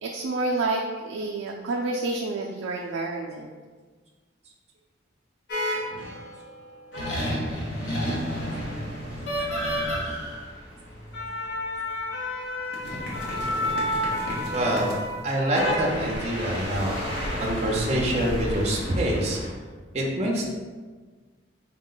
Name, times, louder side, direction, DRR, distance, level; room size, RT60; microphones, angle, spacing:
voice 1, 0.0-3.5, right 2 dB, 90° right, -1 dB, 0.3 m, -29 dB
sound 1, 5.5-6.3 6.9-19.5, equal, 65° left, 0.9 m, -30 dB
voice 2, 14.5-15.0 15.2-17.1 17.4-19.4 19.9-20.5, right 1 dB, 35° right, -2 dB, 0.5 m, -26 dB
4.3 x 2.1 x 3.8 m, 1.4 s
head